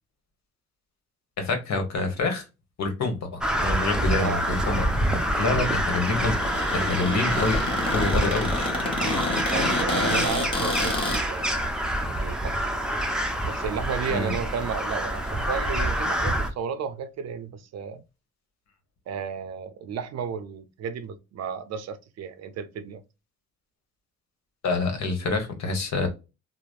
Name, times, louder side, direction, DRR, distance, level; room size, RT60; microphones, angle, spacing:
voice 1, 1.4-2.5 2.8-4.8 5.4-6.3 6.7-7.6 7.9-8.5 14.1-14.3 24.6-26.1, left 3 dB, 60° left, 1.1 m, -26 dB
Crow, 3.4-16.5, equal, 5° right, 0.5 m, -27 dB
Cupboard open or close, 4.5-11.2, left 2 dB, 20° left, 0.9 m, -30 dB
voice 2, 9.0-11.6 12.0-12.6 13.4-18.0 19.1-23.0, right 6 dB, 60° right, 0.5 m, -33 dB
3.2 x 2.0 x 2.4 m
cardioid pair, 90°, 30 cm